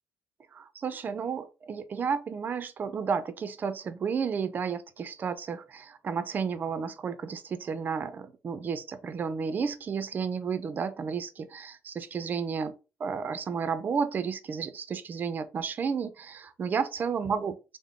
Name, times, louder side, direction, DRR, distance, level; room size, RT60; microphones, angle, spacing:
voice 1, 0.5-12.7 13.0-17.6, right 6 dB, 40° right, 0.4 m, -32 dB
3.4 x 2.0 x 3.5 m
cardioid pair, 100°, 5 cm